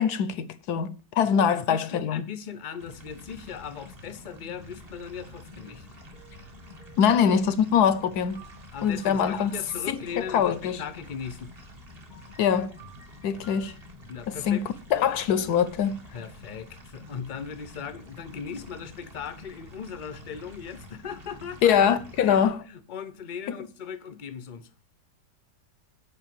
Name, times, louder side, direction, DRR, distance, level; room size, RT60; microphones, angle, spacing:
voice 1, 0.0-2.2 7.0-8.4 8.8-9.5 9.9-10.0 10.3-10.8 12.4-12.7 13.2-13.7 14.3-14.6 14.9-16.0 21.6-22.6, left 8 dB, 70° left, 1.1 m, -23 dB
voice 2, 1.3-5.9 8.7-11.5 14.1-14.7 16.1-21.9 22.2-24.7, left 7 dB, 45° left, 0.6 m, -38 dB
sound 1, 2.8-22.5, left 1 dB, 25° right, 1.3 m, -48 dB
sound 2, 5.6-7.2 7.9-10.6 12.1-13.9, right 4 dB, 55° right, 4.4 m, -54 dB
8.0 x 5.9 x 7.6 m
omnidirectional pair, 1.9 m